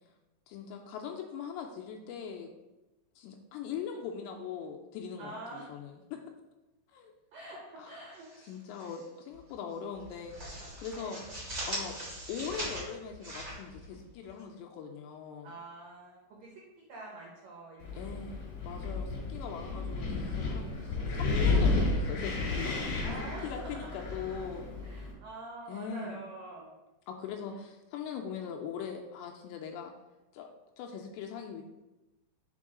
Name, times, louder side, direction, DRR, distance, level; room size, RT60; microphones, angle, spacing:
voice 1, 0.5-2.5 3.2-6.2 6.9-7.1 7.8-8.0 8.5-10.5 10.8-11.2 11.7-12.0 12.3-15.5 17.9-18.4 18.6-24.7 25.7-26.2 27.1-29.9 30.3-30.5 30.8-31.6, left 7 dB, 85° left, 2 dB, 2.6 m, -41 dB
voice 2, 5.2-5.7 7.3-8.4 8.8-8.9 10.9-11.3 15.4-16.5 16.9-18.2 20.6-21.0 23.0-23.9 24.8-26.7, right 2 dB, 80° right, -3 dB, 1.9 m, -46 dB
sound 1, 8.1-9.0 9.3-9.5 9.9-14.4, right 1 dB, 60° right, 0.9 m, -41 dB
Wind, 17.8-25.1, left 3 dB, 60° left, 2.2 m, -32 dB
6.1 x 4.5 x 3.7 m, 1.0 s
omnidirectional pair, 5.2 m